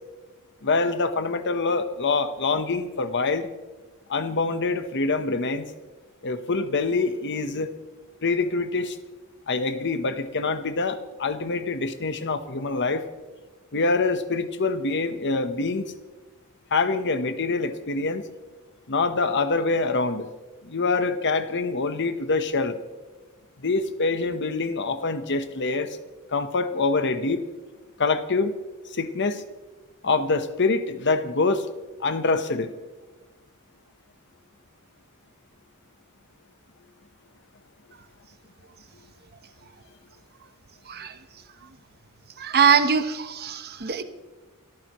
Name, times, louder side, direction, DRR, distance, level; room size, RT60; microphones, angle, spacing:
voice 1, 0.6-3.5 4.1-5.7 6.2-7.7 8.2-9.0 9.5-13.0 13.7-15.9 16.7-18.2 18.9-20.3 20.6-22.8 23.6-26.0 26.3-27.4 28.0-28.5 28.9-29.4 30.0-31.7 32.0-32.7, left 3 dB, 55° left, 10 dB, 1.0 m, -25 dB
voice 2, 42.4-44.0, right 6 dB, 45° right, 9 dB, 1.0 m, -22 dB
29.0 x 14.0 x 3.1 m, 1.3 s
head